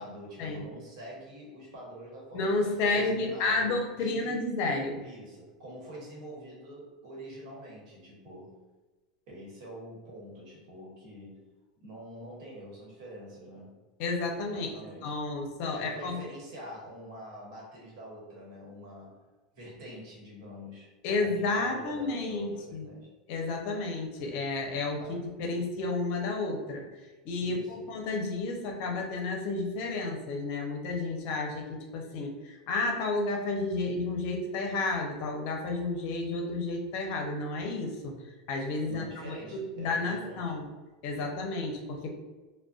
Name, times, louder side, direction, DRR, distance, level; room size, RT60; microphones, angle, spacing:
voice 1, 0.0-4.4 5.0-8.6 9.3-11.4 11.8-13.8 14.5-15.2 15.7-19.2 19.5-23.1 25.0-25.3 27.4-27.9 38.9-40.5, equal, 70° right, -4 dB, 1.1 m, -46 dB
voice 2, 2.3-5.0 14.0-14.7 15.0-16.3 21.0-22.9 23.3-25.0 25.4-26.9 27.2-38.2 38.5-40.6 41.0-42.1, left 3 dB, 55° left, 2 dB, 0.6 m, -31 dB
2.4 x 2.1 x 2.4 m, 1.2 s
supercardioid pair, 110°, 4 cm